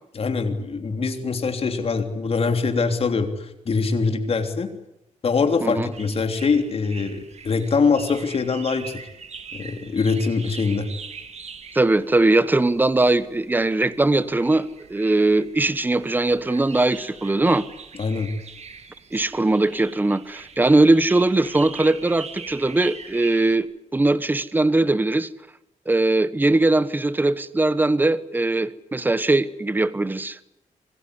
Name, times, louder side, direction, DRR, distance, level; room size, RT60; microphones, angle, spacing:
voice 1, 0.1-4.7 5.2-9.0 9.5-10.9 18.0-18.3, left 4 dB, 50° left, 6 dB, 3.3 m, -23 dB
sound 1, 5.9-23.6, right 5 dB, 55° right, 2.6 m, -42 dB
voice 2, 11.7-17.6 19.1-23.7 23.9-25.3 25.9-30.4, right 2 dB, 15° right, 15 dB, 1.0 m, -20 dB
26.0 x 19.5 x 9.8 m, 0.87 s
wide cardioid pair, 170°, 13 cm